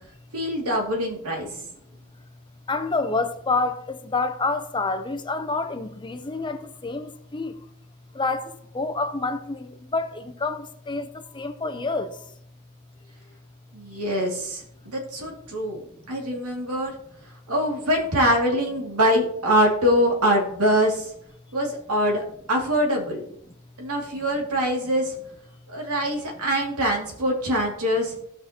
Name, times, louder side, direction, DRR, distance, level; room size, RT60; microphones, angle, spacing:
voice 1, 0.3-1.5 13.7-16.9 17.5-21.1 21.5-22.2 22.5-23.2 23.8-25.2 25.7-28.2, equal, 90° right, 2.4 m, -24 dB
voice 2, 2.7-7.6 8.1-12.2, left 3 dB, 20° left, 0.6 m, -28 dB
16.0 x 5.7 x 2.9 m
head